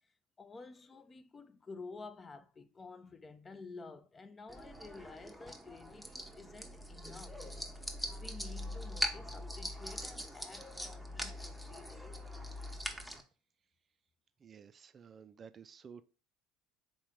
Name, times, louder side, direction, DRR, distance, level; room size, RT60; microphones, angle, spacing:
voice 1, 0.4-7.4 8.1-12.2, left 3 dB, 25° left, 0.5 m, -51 dB
sound 1, 4.5-13.2, equal, ahead, 0.8 m, -42 dB
voice 2, 14.4-16.0, right 6 dB, 40° right, 0.3 m, -53 dB
3.8 x 3.1 x 3.6 m
hypercardioid pair, 70°, 0 cm